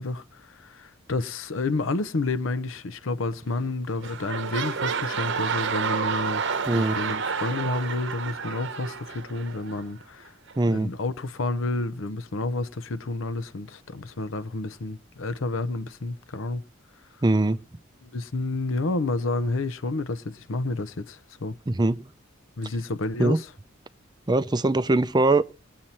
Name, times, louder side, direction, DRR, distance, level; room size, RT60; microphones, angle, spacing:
voice 1, 0.0-6.4 6.7-10.3 10.7-16.6 18.0-21.5 22.6-23.5, left 2 dB, 75° left, 0.7 m, -30 dB
sound 1, 3.4-3.7 4.0-9.8 10.5-10.6, right 5 dB, 65° right, 1.0 m, -30 dB
voice 2, 6.7-7.0 10.6-10.9 17.2-17.6 21.7-22.0 23.2-23.4 24.3-25.4, right 2 dB, 20° right, 0.5 m, -21 dB
19.0 x 7.5 x 4.2 m
head